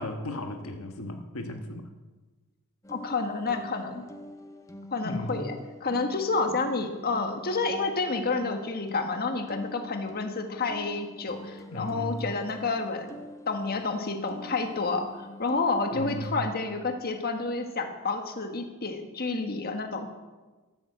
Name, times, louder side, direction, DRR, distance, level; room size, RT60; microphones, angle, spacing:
voice 1, 0.0-1.9 5.0-5.4 6.5-6.6 11.7-12.3 15.9-16.5, left 1 dB, 70° left, 5 dB, 1.5 m, -35 dB
sound 1, 2.8-16.3, left 1 dB, 15° left, 1.2 m, -45 dB
voice 2, 2.9-4.0 4.9-5.5 5.8-13.2 13.5-20.1, left 3 dB, 45° left, 6 dB, 1.5 m, -29 dB
13.5 x 12.5 x 7.7 m, 1.2 s
head